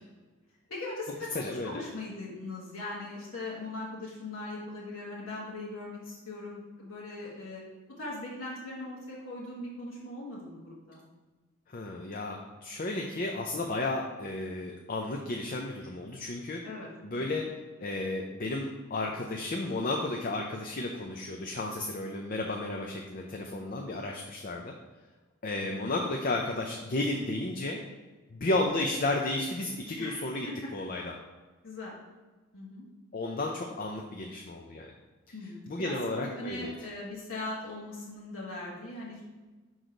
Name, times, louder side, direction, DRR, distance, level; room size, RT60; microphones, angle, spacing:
voice 1, 0.7-7.6 8.0-11.0 16.6-17.4 25.7-26.0 28.7-28.8 30.0-30.5 31.6-31.9 32.5-32.8 35.3-39.2, left 2 dB, 60° left, -6 dB, 1.5 m, -40 dB
voice 2, 1.3-1.8 11.7-16.6 17.0-24.7 25.4-27.8 28.3-30.5 30.7-31.1 33.1-34.9 35.7-36.7, left 2 dB, 40° left, 1 dB, 0.5 m, -33 dB
6.3 x 3.9 x 5.0 m, 1.3 s
head